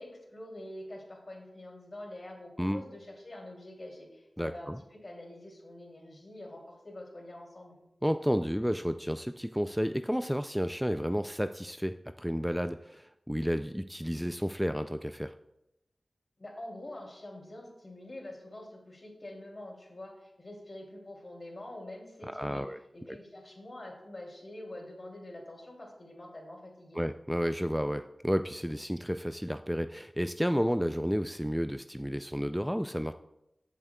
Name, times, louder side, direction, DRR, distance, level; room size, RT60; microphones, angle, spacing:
voice 1, 0.0-7.8 16.4-22.6 22.9-27.0, left 1 dB, 50° left, -1 dB, 2.8 m, -46 dB
voice 2, 4.4-4.8 8.0-15.3 22.2-22.8 23.1-23.2 26.9-33.1, equal, ahead, 9 dB, 0.3 m, -31 dB
14.5 x 7.2 x 2.3 m, 0.88 s
cardioid pair, 45°, 0 cm